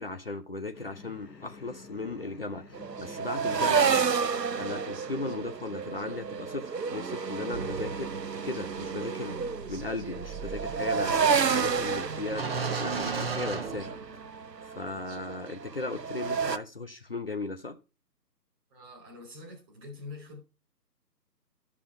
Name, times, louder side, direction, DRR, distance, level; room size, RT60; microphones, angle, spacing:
voice 1, 0.0-3.9 4.6-8.1 8.4-9.4 9.7-12.5 12.8-13.9 14.6-17.8, left 3 dB, 35° left, 0.6 m, -37 dB
sound 1, 0.7-7.7, left 3 dB, 75° left, 1.4 m, -53 dB
sound 2, 2.7-16.6, right 6 dB, 80° right, 0.8 m, -30 dB
sound 3, 7.5-14.5, right 4 dB, 35° right, 0.9 m, -37 dB
voice 2, 18.7-20.4, left 3 dB, 10° right, 1.4 m, -45 dB
11.5 x 6.1 x 3.2 m
figure-of-eight pair, 145°, 49 cm